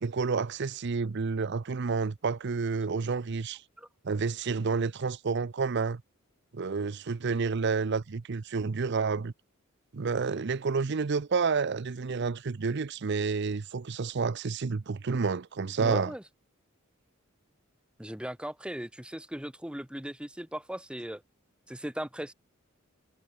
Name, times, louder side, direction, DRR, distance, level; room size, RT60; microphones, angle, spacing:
voice 1, 0.0-3.6 4.0-6.0 6.5-9.3 9.9-16.1, right 4 dB, 55° right, 0.6 m, -29 dB
voice 2, 15.8-16.2 18.0-21.2 21.7-22.3, equal, 5° right, 1.3 m, -38 dB
head